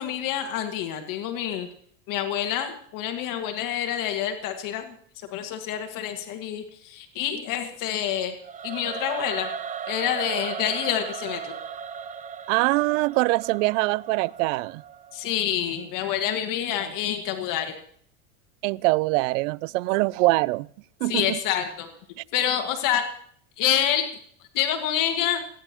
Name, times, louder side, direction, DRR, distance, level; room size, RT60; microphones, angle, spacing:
voice 1, 0.0-1.7 2.1-4.9 5.3-8.3 8.6-9.5 9.9-11.5 15.1-17.8 21.1-21.9 22.3-23.1 23.6-24.1 24.5-25.4, left 10 dB, 50° left, 1.7 m, -27 dB
Singing / Musical instrument, 8.4-15.5, right 7 dB, 20° right, 0.6 m, -37 dB
voice 2, 12.5-14.8 18.6-20.7 21.0-21.4, right 22 dB, 65° right, 0.5 m, -23 dB
29.5 x 10.0 x 3.0 m
supercardioid pair, 110°, 40 cm